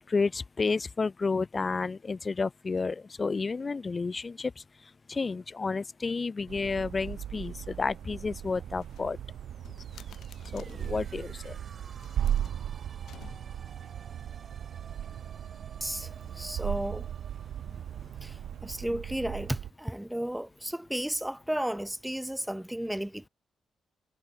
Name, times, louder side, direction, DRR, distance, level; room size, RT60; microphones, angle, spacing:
voice 1, 0.1-4.5 5.1-9.2 10.5-11.6, left 4 dB, 35° left, 1.4 m, -31 dB
sound 1, 6.5-19.7, right 10 dB, 75° right, 0.8 m, -37 dB
sound 2, 8.8-11.1 11.8-13.8, left 10 dB, 75° left, 7.2 m, -54 dB
sound 3, 9.4-19.1, right 5 dB, 50° right, 5.0 m, -55 dB
voice 2, 15.8-17.1 18.2-23.3, right 1 dB, 5° right, 0.9 m, -34 dB
cardioid pair, 65°, 0 cm